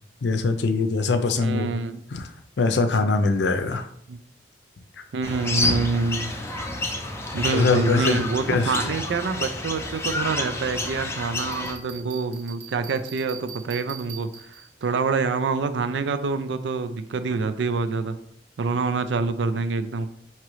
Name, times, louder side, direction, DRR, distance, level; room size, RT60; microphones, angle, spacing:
voice 1, 0.2-1.7 2.1-2.3 2.6-3.8 7.5-8.2 8.5-8.8, left 4 dB, 75° left, 8 dB, 0.5 m, -22 dB
voice 2, 1.4-2.0 4.1-4.2 5.1-6.3 7.3-14.3 14.8-18.2 18.6-20.1, right 4 dB, 85° right, 11 dB, 0.4 m, -26 dB
sound 1, 5.2-11.7, left 2 dB, 15° left, 0.5 m, -29 dB
Bell, 11.5-14.9, right 8 dB, 50° right, 0.9 m, -42 dB
4.8 x 2.9 x 3.0 m, 0.65 s
head